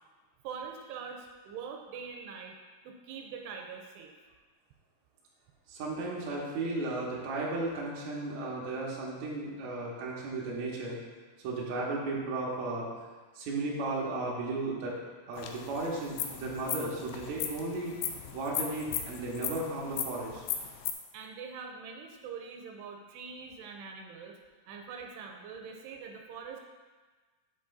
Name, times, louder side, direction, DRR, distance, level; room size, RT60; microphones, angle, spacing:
voice 1, 0.4-2.6 2.8-4.1 21.1-24.4 24.7-26.6, right 6 dB, 85° right, 2 dB, 2.7 m, -43 dB
voice 2, 5.7-11.0 11.4-12.9 13.4-14.9 15.3-18.0 18.3-20.4, right 2 dB, 60° right, -5 dB, 2.0 m, -35 dB
sound 1, 15.4-20.9, left 9 dB, 85° left, 2.6 m, -37 dB
8.0 x 7.3 x 2.6 m, 1.3 s
omnidirectional pair, 4.8 m